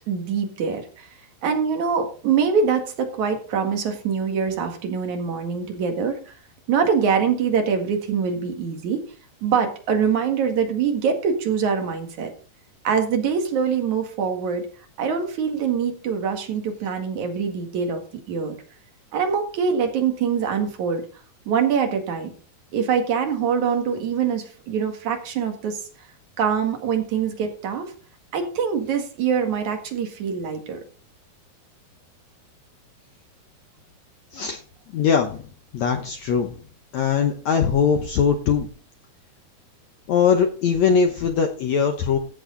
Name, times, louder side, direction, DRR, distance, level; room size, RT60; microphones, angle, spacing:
voice 1, 0.1-1.1 1.4-6.3 6.7-9.0 9.4-12.3 12.8-14.7 15.0-18.0 18.3-18.6 19.1-21.0 21.5-22.3 22.7-25.8 26.4-27.9 28.3-30.8, right 6 dB, 55° right, 5 dB, 2.8 m, -24 dB
voice 2, 34.9-35.5 35.7-36.6 36.9-38.7 40.1-42.2, left 6 dB, 85° left, 5 dB, 1.5 m, -21 dB
14.5 x 7.8 x 3.9 m, 0.39 s
omnidirectional pair, 4.7 m